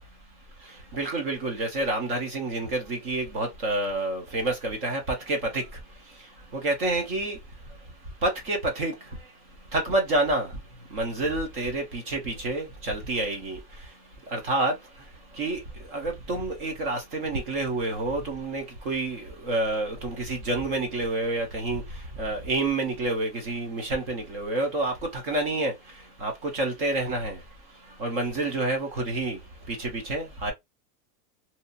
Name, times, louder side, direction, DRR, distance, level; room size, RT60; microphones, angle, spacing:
voice 1, 0.9-5.0 5.3-5.6 6.6-7.4 8.2-8.9 9.7-10.5 10.9-13.6 14.3-14.7 15.4-15.6 15.9-21.8 22.2-25.7 26.2-27.4 28.0-29.4 29.8-30.5, right 2 dB, 35° right, 0.7 m, -28 dB
2.8 x 2.4 x 2.4 m
supercardioid pair, 180°, 49 cm